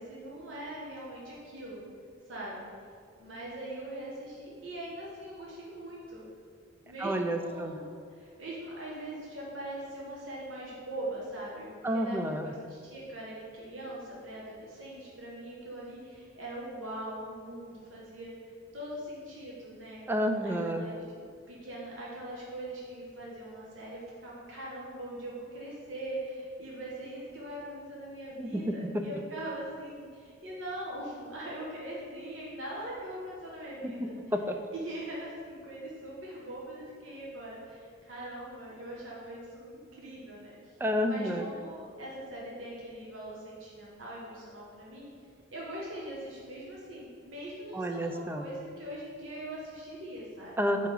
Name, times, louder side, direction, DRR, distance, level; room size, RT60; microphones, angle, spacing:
voice 1, 0.0-1.8 2.3-2.7 3.2-6.2 6.8-12.2 12.4-18.3 18.7-20.0 20.4-34.1 34.7-40.8 41.0-45.1 45.5-50.6, right 1 dB, 80° right, -5 dB, 1.1 m, -41 dB
voice 2, 7.0-7.8 11.8-12.5 20.1-20.9 28.4-29.1 33.8-34.6 40.8-41.5 47.7-48.4 50.6-50.9, equal, 10° right, 5 dB, 0.4 m, -30 dB
4.8 x 4.5 x 5.3 m, 2.2 s
head